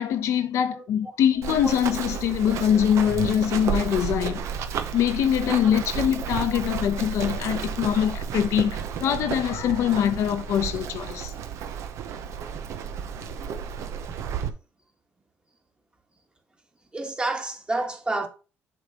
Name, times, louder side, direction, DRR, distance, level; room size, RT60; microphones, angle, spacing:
voice 1, 0.0-4.4 4.9-11.3, left 9 dB, 70° left, 0.9 m, -23 dB
Run, 1.4-14.5, right 7 dB, 70° right, 0.8 m, -32 dB
voice 2, 16.9-18.3, right 2 dB, 20° right, 1.5 m, -28 dB
7.1 x 3.4 x 5.1 m
cardioid pair, 95°, 5 cm